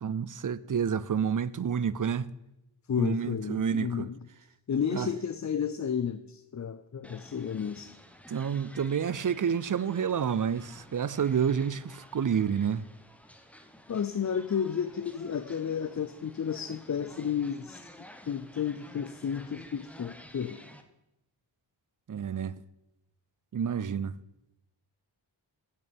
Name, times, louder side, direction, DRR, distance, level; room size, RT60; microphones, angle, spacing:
voice 1, 0.0-2.3 3.0-4.1 4.9-5.1 8.3-12.8 22.1-22.5 23.5-24.2, right 7 dB, 40° right, 0.6 m, -29 dB
voice 2, 2.9-4.2 4.7-8.0 13.9-17.8 18.3-20.6, left 7 dB, 35° left, 0.5 m, -32 dB
sound 1, 7.0-20.8, equal, 5° left, 1.1 m, -52 dB
8.6 x 6.8 x 8.7 m
wide cardioid pair, 70°, 48 cm